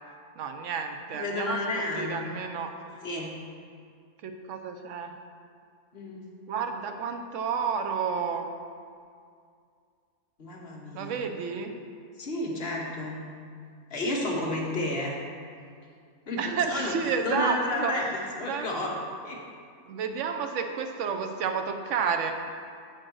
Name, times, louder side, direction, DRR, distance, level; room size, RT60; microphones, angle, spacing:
voice 1, 0.4-1.6 1.9-2.7 4.2-5.1 6.5-8.5 10.9-11.7 16.4-17.9 18.4-18.7 19.9-22.3, right 6 dB, 65° right, 5 dB, 0.9 m, -30 dB
voice 2, 1.1-2.2 3.0-3.4 5.9-6.3 10.4-11.2 12.2-13.2 13.9-15.2 16.3-16.9 17.2-18.9 19.2-19.4, left 2 dB, 45° left, -2 dB, 1.3 m, -31 dB
7.4 x 4.6 x 6.2 m, 2.3 s
omnidirectional pair, 1.5 m